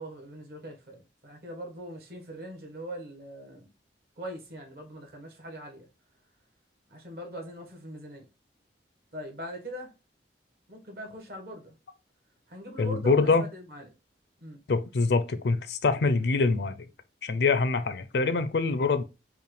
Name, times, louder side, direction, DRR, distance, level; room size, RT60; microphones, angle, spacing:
voice 1, 0.0-3.7 4.2-5.9 6.9-8.2 9.1-9.9 10.7-11.8 12.5-13.9 14.4-14.6, equal, 60° right, 1.2 m, -41 dB
voice 2, 12.8-13.4 14.7-16.9 17.2-19.0, left 4 dB, 65° left, 0.5 m, -25 dB
5.5 x 2.3 x 3.1 m
head